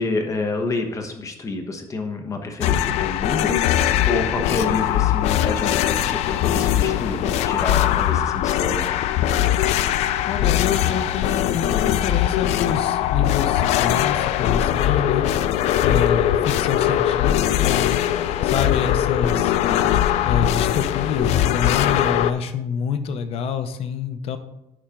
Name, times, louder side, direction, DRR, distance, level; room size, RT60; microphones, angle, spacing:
voice 1, 0.0-8.9 19.6-19.9, left 3 dB, 30° left, 4 dB, 1.2 m, -28 dB
sound 1, 2.6-22.3, left 11 dB, 85° left, 0.4 m, -21 dB
voice 2, 10.3-15.2 15.6-17.9 18.4-19.6 20.2-24.4, left 7 dB, 65° left, 9 dB, 0.8 m, -27 dB
11.5 x 4.4 x 3.8 m, 0.87 s
cardioid pair, 135°, 11 cm